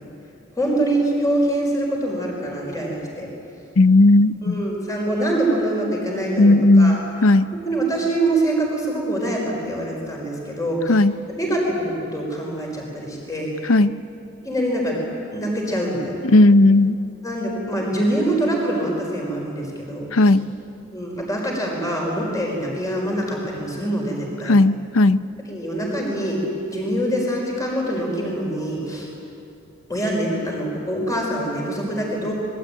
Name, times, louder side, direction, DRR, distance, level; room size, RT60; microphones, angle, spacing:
voice 1, 0.6-3.3 4.4-7.0 7.6-10.8 11.4-13.7 14.4-15.0 15.3-16.2 17.2-20.1 20.9-24.5 25.5-26.4 26.7-29.1 29.9-32.3, right 1 dB, 15° left, -1 dB, 5.1 m, -24 dB
voice 2, 3.8-4.6 6.4-7.5 10.9-11.1 13.6-14.0 16.2-17.0 20.1-20.5 24.4-25.2, left 2 dB, 80° left, 13 dB, 0.8 m, -15 dB
25.5 x 21.5 x 9.1 m, 2.7 s
head